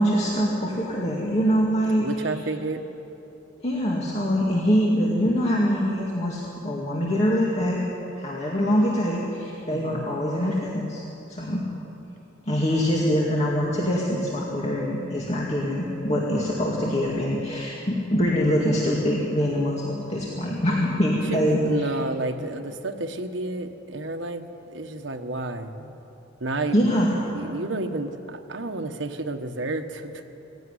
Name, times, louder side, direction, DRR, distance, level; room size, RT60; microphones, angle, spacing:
voice 1, 0.0-2.1 3.6-7.8 8.2-11.0 11.3-11.7 12.5-21.9 26.7-27.1, equal, 35° left, -4 dB, 2.3 m, -24 dB
voice 2, 1.9-2.8 9.7-10.1 21.3-26.0 26.4-30.3, right 2 dB, 75° right, 5 dB, 1.3 m, -31 dB
18.5 x 16.0 x 9.9 m, 3.0 s
head